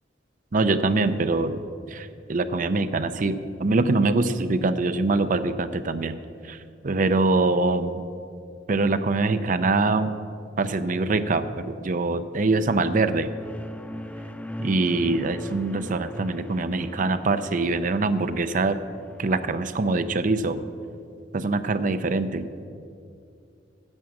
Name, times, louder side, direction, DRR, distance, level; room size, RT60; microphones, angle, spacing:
voice 1, 0.5-6.2 6.4-6.6 6.8-8.0 8.7-10.1 10.6-13.3 14.6-18.8 19.2-20.6 21.3-22.5, right 3 dB, 45° right, 11 dB, 0.5 m, -24 dB
sound 1, 12.9-19.5, equal, 10° left, 0.4 m, -40 dB
11.0 x 7.6 x 7.1 m, 2.5 s
head